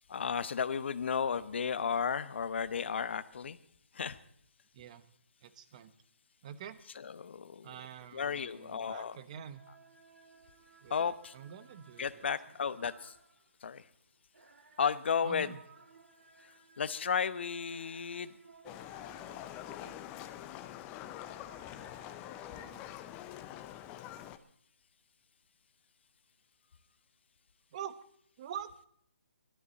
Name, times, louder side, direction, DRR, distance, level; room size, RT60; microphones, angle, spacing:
voice 1, 0.1-3.6 3.9-4.2 7.0-7.7 8.1-9.2 10.9-11.3 12.0-13.1 13.6-13.8 14.8-15.5 16.8-18.3, left 6 dB, 50° left, 14 dB, 1.0 m, -33 dB
voice 2, 4.7-5.0 5.4-5.9 6.4-6.8 7.6-9.6 10.8-12.3 15.2-15.6 22.5-22.8 27.7-27.9 28.4-28.7, right 9 dB, 30° right, 13 dB, 1.1 m, -46 dB
sound 1, 9.5-23.5, right 4 dB, 75° right, 2.7 m, -60 dB
Livestock farm animals working animals, 18.6-24.4, left 12 dB, 15° left, 0.6 m, -45 dB
21.5 x 12.5 x 4.1 m, 0.66 s
hypercardioid pair, 165°, 7 cm